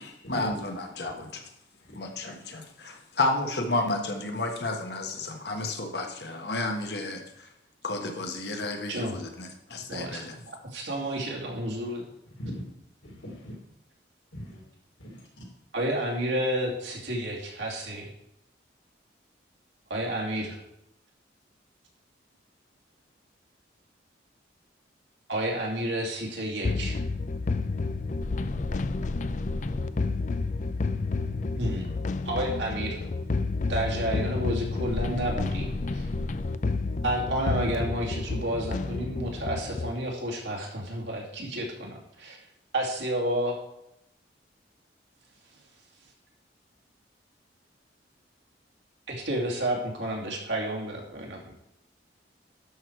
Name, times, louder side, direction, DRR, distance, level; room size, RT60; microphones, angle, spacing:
voice 1, 0.3-1.4 2.0-7.2 7.8-10.4, left 2 dB, 60° left, 4 dB, 1.4 m, -31 dB
voice 2, 9.9-10.2 10.7-12.1 15.7-18.1 19.9-20.6 25.3-27.0 31.6-31.9 32.3-33.1 33.7-36.1 37.0-42.4 42.7-43.6 49.1-51.5, right 1 dB, 80° right, -1 dB, 2.5 m, -30 dB
voice 3, 12.3-12.7 13.0-13.6 14.3-14.6 15.0-15.5, equal, 80° left, 0 dB, 3.1 m, -41 dB
sound 1, 26.6-39.9, left 3 dB, 40° left, 0.4 m, -30 dB
12.0 x 6.2 x 4.6 m, 0.82 s
head